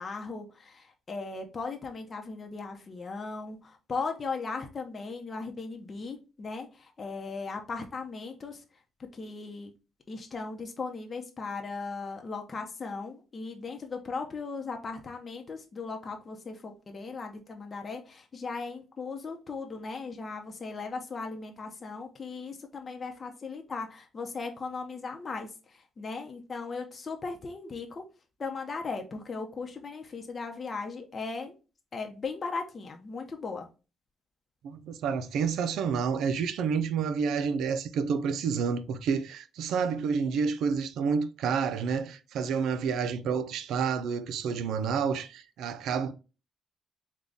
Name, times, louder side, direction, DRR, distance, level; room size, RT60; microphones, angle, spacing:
voice 1, 0.0-8.6 9.1-9.7 10.1-28.0 28.4-31.5 31.9-33.7, left 4 dB, 40° left, 0.7 m, -37 dB
voice 2, 34.6-46.1, right 6 dB, 80° right, 0.4 m, -29 dB
3.9 x 2.3 x 3.4 m
cardioid pair, 90°, 0 cm